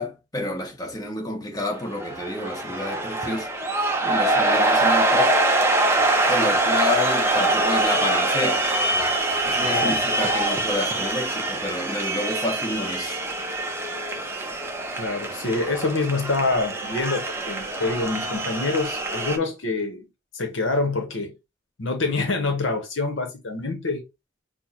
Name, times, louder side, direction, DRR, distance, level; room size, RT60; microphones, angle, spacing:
voice 1, 0.0-3.5 4.0-5.4 6.3-8.6 9.4-13.2, left 1 dB, 15° left, 1.1 m, -29 dB
sound 1, 1.7-19.4, right 2 dB, 10° right, 0.6 m, -24 dB
voice 2, 15.0-20.1 20.3-21.3 21.8-24.0, left 3 dB, 60° left, 0.9 m, -26 dB
6.1 x 2.1 x 2.9 m
head